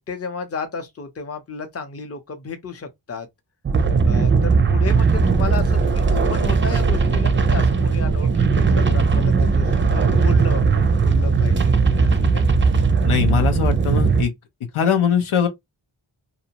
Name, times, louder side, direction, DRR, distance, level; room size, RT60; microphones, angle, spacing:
voice 1, 0.0-3.3 4.0-12.5, left 4 dB, 30° left, 0.6 m, -33 dB
sound 1, 3.7-14.2, right 4 dB, 25° right, 0.4 m, -18 dB
voice 2, 13.0-14.3 14.7-15.5, left 8 dB, 85° left, 0.7 m, -20 dB
2.6 x 2.0 x 2.8 m
wide cardioid pair, 55°, 49 cm